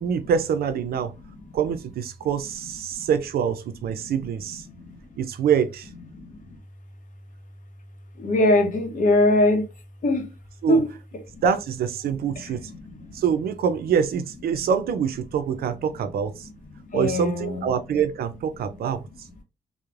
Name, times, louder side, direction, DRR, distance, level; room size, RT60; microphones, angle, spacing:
voice 1, 0.0-1.1 1.5-4.7 5.2-5.9 10.6-10.8 11.4-12.7 13.1-16.5 16.9-19.3, right 7 dB, 70° right, 0.4 m, -25 dB
voice 2, 1.2-1.5 2.9-3.1 4.0-4.1 4.6-5.0 6.1-6.6 8.2-9.7 10.0-10.3 10.7-10.9 11.3-11.4 12.3-12.6 12.9-13.2 16.7-17.7 18.7-18.8, left 1 dB, 55° left, 0.8 m, -23 dB
3.0 x 2.0 x 2.4 m
cardioid pair, 100°, 16 cm